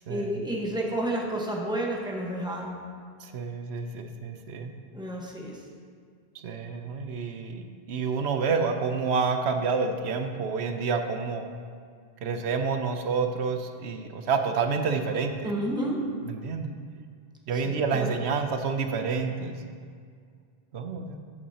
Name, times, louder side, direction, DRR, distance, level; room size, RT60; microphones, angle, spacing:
voice 1, 0.1-2.8 4.9-5.6 15.4-16.0 17.5-18.1, right 1 dB, 5° right, -2 dB, 1.2 m, -31 dB
voice 2, 3.2-4.7 6.4-11.5 12.2-15.5 16.3-16.7 17.5-19.5 20.7-21.2, right 5 dB, 85° right, 6 dB, 1.0 m, -29 dB
14.0 x 8.4 x 2.8 m, 2.1 s
omnidirectional pair, 1.1 m